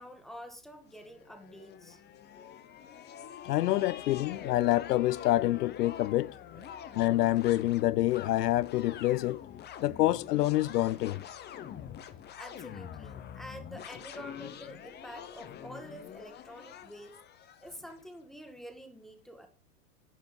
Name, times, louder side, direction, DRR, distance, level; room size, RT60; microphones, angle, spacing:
voice 1, 0.0-2.0 6.5-6.7 12.4-17.1 17.6-19.5, equal, ahead, 1.6 m, -48 dB
sound 1, 0.9-18.0, left 9 dB, 20° left, 0.8 m, -46 dB
voice 2, 3.4-6.4 6.9-9.4 9.8-11.2, left 15 dB, 80° left, 0.5 m, -27 dB
11.0 x 5.6 x 5.2 m
hypercardioid pair, 115°, 46 cm